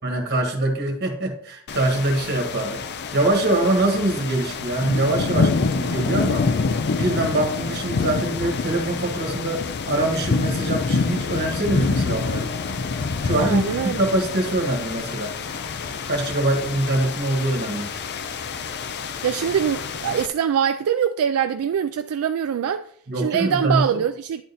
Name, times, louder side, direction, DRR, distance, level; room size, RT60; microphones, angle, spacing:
voice 1, 0.0-2.8 3.1-6.5 6.9-12.5 13.2-15.4 16.1-17.9 23.1-24.0, right 1 dB, 50° right, 1.7 m, -24 dB
sound 1, 1.7-20.3, left 4 dB, 50° left, 0.5 m, -27 dB
voice 2, 13.4-14.0 19.2-22.9 23.2-24.4, right 8 dB, 70° right, 0.3 m, -23 dB
10.0 x 3.9 x 4.0 m
head